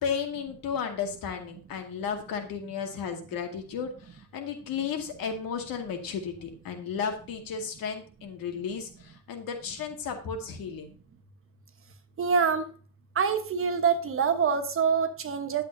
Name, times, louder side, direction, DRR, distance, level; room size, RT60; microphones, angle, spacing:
voice 1, 0.0-3.9 4.3-10.9, left 6 dB, 80° left, 4 dB, 2.3 m, -33 dB
voice 2, 12.2-12.6 13.2-15.6, right 6 dB, 40° right, 8 dB, 1.2 m, -25 dB
11.0 x 8.1 x 2.8 m, 0.41 s
cardioid pair, 145°, 34 cm